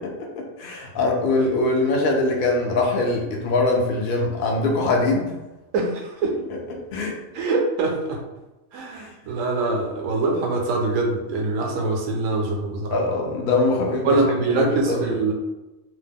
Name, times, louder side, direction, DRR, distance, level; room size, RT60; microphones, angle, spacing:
voice 1, 0.4-5.3 6.5-6.6 6.9-7.1 8.9-9.1 12.9-14.2 14.5-15.2, left 2 dB, 65° left, 0 dB, 0.5 m, -22 dB
voice 2, 7.3-8.2 8.7-12.9 14.0-15.3, right 3 dB, 75° right, 1 dB, 1.0 m, -23 dB
2.9 x 2.0 x 3.4 m, 1.0 s
omnidirectional pair, 1.4 m